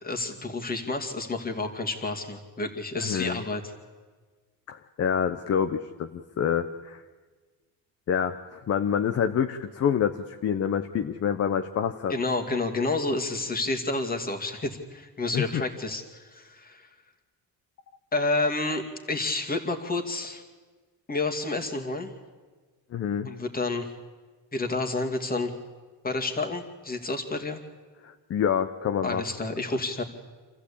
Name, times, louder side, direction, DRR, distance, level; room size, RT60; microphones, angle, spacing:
voice 1, 0.0-3.6 12.1-16.9 18.1-20.4 21.1-22.1 23.3-23.9 24.5-25.5 26.0-27.6 29.0-30.0, left 2 dB, 20° left, 4 dB, 2.3 m, -29 dB
voice 2, 3.0-3.4 4.7-7.0 8.1-12.1 15.3-15.6 22.9-23.3 28.0-29.2, left 8 dB, 35° left, 9 dB, 0.8 m, -27 dB
27.0 x 14.5 x 8.6 m, 1.4 s
cardioid pair, 130°, 41 cm